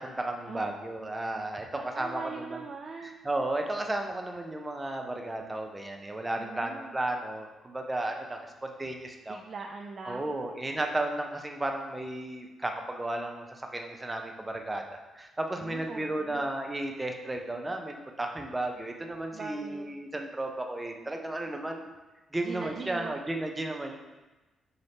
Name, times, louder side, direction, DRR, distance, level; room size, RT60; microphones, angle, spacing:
voice 1, 0.0-2.6 3.0-9.4 10.0-21.9 22.3-24.0, right 1 dB, 20° right, 3 dB, 0.7 m, -34 dB
voice 2, 1.7-3.2 6.4-7.0 9.3-10.3 15.6-16.5 19.3-19.9 22.4-23.2, right 4 dB, 50° right, 2 dB, 0.3 m, -41 dB
6.2 x 2.9 x 2.9 m, 1.1 s
hypercardioid pair, 40°, 0 cm